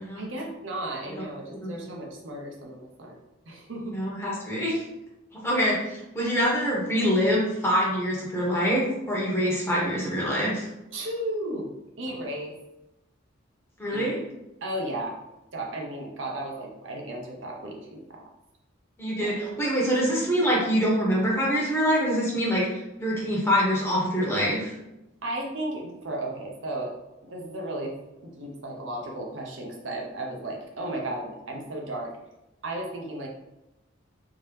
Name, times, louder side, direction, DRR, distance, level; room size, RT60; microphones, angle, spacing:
voice 1, 0.2-3.2 3.5-4.0 10.9-11.7 12.0-12.6 13.9-14.1 14.6-15.2 15.5-18.2 19.2-19.6 25.2-26.9 27.2-28.0 28.2-32.1 32.6-33.3, right 1 dB, 70° right, 0 dB, 0.7 m, -34 dB
voice 2, 3.8-4.8 5.4-10.7 13.8-14.2 19.0-24.7, equal, 10° left, -5 dB, 1.0 m, -25 dB
3.6 x 2.8 x 3.2 m, 0.93 s
head